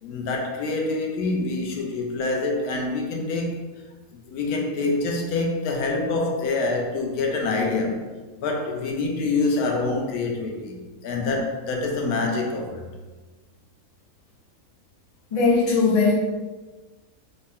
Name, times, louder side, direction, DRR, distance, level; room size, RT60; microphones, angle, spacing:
voice 1, 0.0-3.6 4.3-8.0 8.4-12.9, left 3 dB, 80° left, 1.1 m, -26 dB
voice 2, 15.3-16.1, left 4 dB, 40° left, 0.5 m, -19 dB
3.8 x 2.1 x 3.5 m
omnidirectional pair, 1.6 m